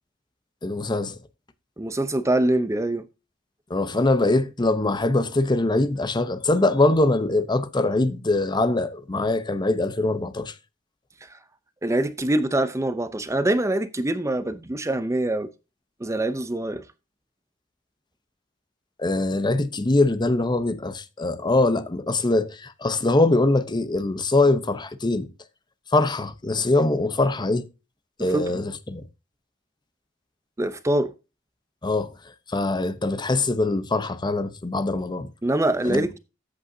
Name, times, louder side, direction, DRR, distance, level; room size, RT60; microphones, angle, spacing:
voice 1, 0.6-1.2 3.7-10.5 19.0-25.3 25.9-27.7 28.2-29.0 31.8-32.1 32.5-35.3 35.8-36.1, left 2 dB, 25° left, 0.8 m, -23 dB
voice 2, 1.8-3.1 11.2-11.4 11.8-15.5 16.0-16.8 28.3-28.4 30.6-31.1 35.4-36.2, right 1 dB, 15° right, 0.6 m, -24 dB
13.5 x 8.5 x 2.7 m
head